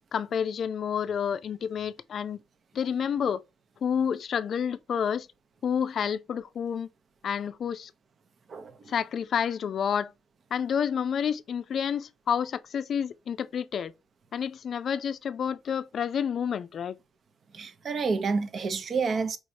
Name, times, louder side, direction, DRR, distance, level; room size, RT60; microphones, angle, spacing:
voice 1, 0.1-2.4 2.7-3.4 3.8-5.3 5.6-6.9 7.2-7.9 8.9-10.1 10.5-13.9 14.3-17.0, left 7 dB, 60° left, 0.4 m, -29 dB
voice 2, 8.5-8.9 17.5-19.4, right 4 dB, 50° right, 0.7 m, -29 dB
4.7 x 3.1 x 2.6 m
cardioid pair, 90°, 0 cm